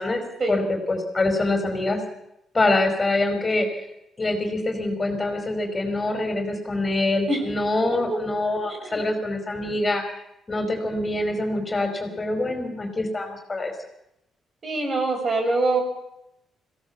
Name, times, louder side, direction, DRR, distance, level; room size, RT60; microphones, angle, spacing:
voice 1, 0.5-2.0 2.5-3.7 4.2-10.0 10.5-13.7, left 2 dB, 25° left, 4 dB, 4.8 m, -25 dB
voice 2, 8.7-9.0 14.6-15.8, right 2 dB, 40° right, 4 dB, 6.2 m, -24 dB
21.5 x 17.0 x 7.2 m, 0.84 s
cardioid pair, 90°, 0 cm